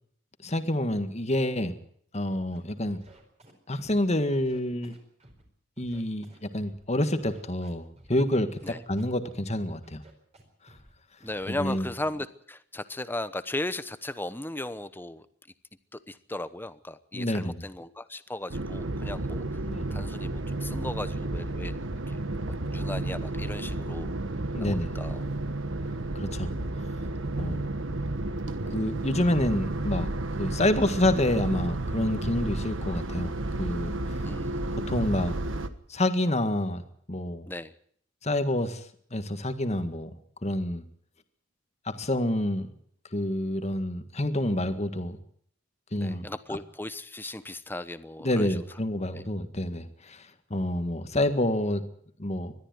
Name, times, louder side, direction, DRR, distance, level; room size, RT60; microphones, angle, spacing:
voice 1, 0.4-1.8 2.1-3.0 3.7-5.0 5.8-8.6 8.9-10.0 11.5-11.9 17.1-17.6 19.7-19.9 24.5-24.9 26.2-26.5 27.4-27.7 28.7-30.1 30.4-34.3 34.8-35.4 35.9-36.8 37.1-37.5 38.2-40.1 40.4-40.9 41.9-42.7 43.1-45.2 45.9-46.3 48.2-51.9 52.2-52.5, left 1 dB, 35° left, 9 dB, 1.8 m, -28 dB
Scratching (performance technique), 2.3-2.6 2.9-4.0 4.3-5.4 5.8-6.8 7.2-8.2 8.5-9.5 9.8-10.4 10.7-10.9 11.2-12.1, right 1 dB, 35° right, 4.7 m, -54 dB
voice 2, 11.2-15.3 15.9-19.6 19.9-21.8 22.1-24.1 24.6-25.3 34.2-35.0 37.5-37.7 46.0-48.6 49.1-49.2, left 1 dB, 10° left, 13 dB, 1.0 m, -37 dB
sound 1, 18.5-35.7, right 2 dB, 85° right, 1.4 m, -32 dB
21.0 x 13.5 x 9.6 m, 0.63 s
head